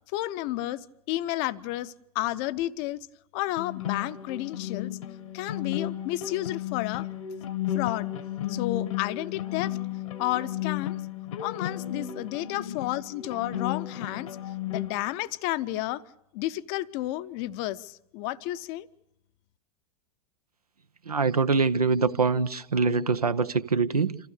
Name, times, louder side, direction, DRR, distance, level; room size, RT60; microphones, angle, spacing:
voice 1, 0.1-3.1 3.3-4.9 5.3-7.1 7.7-8.1 8.5-9.8 10.2-11.0 11.4-14.3 14.7-16.0 16.3-18.9, left 16 dB, 40° left, 0.7 m, -31 dB
sound 1, 3.6-15.0, left 11 dB, 60° left, 1.2 m, -33 dB
voice 2, 21.1-24.2, right 4 dB, 80° right, 0.8 m, -24 dB
27.5 x 15.0 x 6.7 m
figure-of-eight pair, 90°, 19 cm